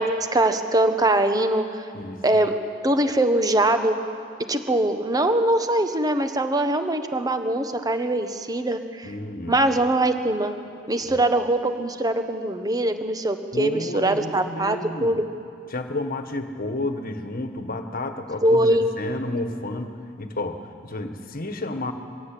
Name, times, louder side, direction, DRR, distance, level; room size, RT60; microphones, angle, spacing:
voice 1, 0.0-1.7 2.2-2.5 2.8-4.0 4.5-9.1 9.5-10.6 10.9-15.2 18.4-18.8, right 1 dB, 20° right, 8 dB, 1.2 m, -22 dB
voice 2, 9.0-9.6 11.1-11.2 13.5-15.2 15.7-21.9, left 2 dB, 45° left, 7 dB, 1.6 m, -31 dB
22.5 x 16.5 x 8.5 m, 2.5 s
head